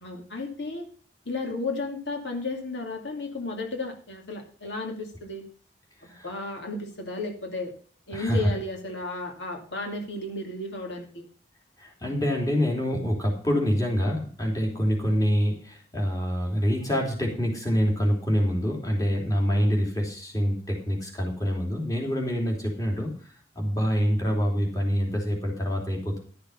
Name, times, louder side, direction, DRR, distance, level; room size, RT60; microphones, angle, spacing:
voice 1, 0.0-0.9 1.3-5.4 6.0-7.7 8.1-11.3, left 2 dB, 85° left, 2 dB, 2.6 m, -33 dB
voice 2, 8.1-8.5 11.8-23.1 23.5-26.2, equal, 20° left, 0 dB, 3.1 m, -26 dB
12.0 x 6.8 x 5.5 m, 0.43 s
head